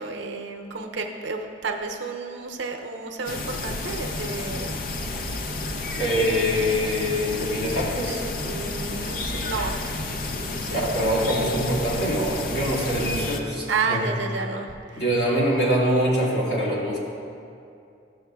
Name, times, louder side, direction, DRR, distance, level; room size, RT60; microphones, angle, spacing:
voice 1, 0.0-4.7 8.1-8.2 8.4-9.7 10.4-11.3 13.7-15.0, right 4 dB, 75° right, 2 dB, 0.7 m, -31 dB
An overlook above a tree-studded valley - evening falls, 3.2-13.4, left 2 dB, 50° left, 0.5 m, -31 dB
voice 2, 6.0-8.2 10.7-14.0 14.9-17.0, equal, 65° left, -6 dB, 2.0 m, -24 dB
13.0 x 6.9 x 2.3 m, 2.5 s
head